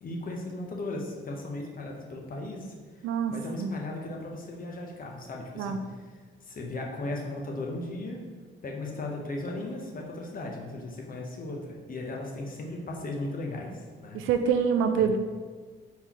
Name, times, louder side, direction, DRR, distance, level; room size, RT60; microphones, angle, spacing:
voice 1, 0.0-6.1 6.4-8.2 8.6-14.2 15.0-15.1, left 2 dB, 45° left, 0 dB, 0.9 m, -37 dB
voice 2, 3.0-3.3 3.6-3.7 5.6-5.8 14.1-15.2, right 7 dB, 90° right, 7 dB, 0.4 m, -25 dB
4.2 x 3.8 x 3.0 m, 1.5 s
cardioid pair, 90°, 20 cm